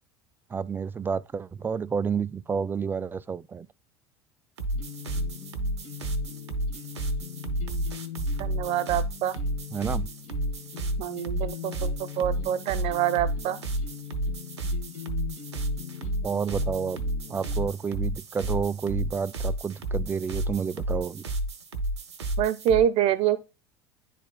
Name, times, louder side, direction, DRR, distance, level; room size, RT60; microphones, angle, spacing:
voice 1, 0.5-3.7 9.7-10.1 16.2-17.0 17.3-21.2, right 6 dB, 15° right, 0.3 m, -30 dB
sound 1, 4.6-22.8, right 1 dB, 80° right, 0.9 m, -31 dB
sound 2, 4.7-17.7, left 10 dB, 55° left, 1.5 m, -41 dB
voice 2, 8.4-9.3 11.0-13.6 22.4-23.4, right 10 dB, 45° right, 0.7 m, -26 dB
10.5 x 4.2 x 2.2 m
figure-of-eight pair, 70°, 14 cm